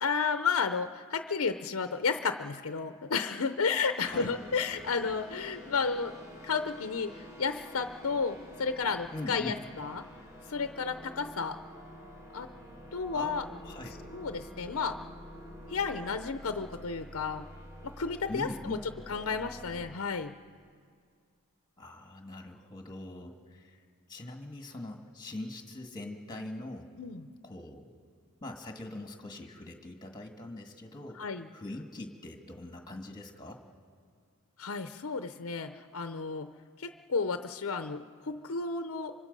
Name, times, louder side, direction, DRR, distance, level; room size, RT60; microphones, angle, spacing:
voice 1, 0.0-6.1 6.4-7.1 7.4-10.0 10.5-11.6 12.3-12.5 12.9-13.5 14.1-15.0 15.7-17.5 17.8-18.8 19.1-20.3 27.0-27.2 31.2-31.5 34.6-36.5 36.8-39.1, left 5 dB, 70° left, 9 dB, 0.6 m, -32 dB
sound 1, 4.0-19.9, equal, 15° right, 2.0 m, -48 dB
voice 2, 9.1-9.6 13.1-14.0 18.3-18.9 21.8-23.8 24.1-26.9 27.4-27.9 28.4-31.2 31.5-33.6, left 1 dB, 20° left, 3 dB, 1.7 m, -42 dB
25.0 x 24.5 x 5.4 m, 2.1 s
head